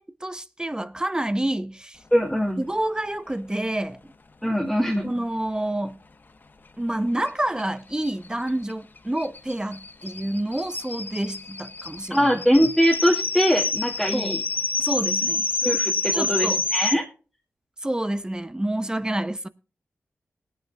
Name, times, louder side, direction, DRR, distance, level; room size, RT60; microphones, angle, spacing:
voice 1, 0.0-2.0 2.6-4.0 5.0-6.0 6.8-12.3 14.1-14.4 14.8-15.4 16.1-16.6 17.8-19.5, right 1 dB, 15° right, 0.8 m, -28 dB
voice 2, 2.1-2.6 4.4-5.1 12.1-14.4 15.6-17.0, equal, ahead, 2.1 m, -22 dB
sound 1, 7.3-7.4 7.6-7.7 8.0-16.9, left 3 dB, 45° left, 1.1 m, -28 dB
20.0 x 9.2 x 2.3 m
cardioid pair, 55°, 5 cm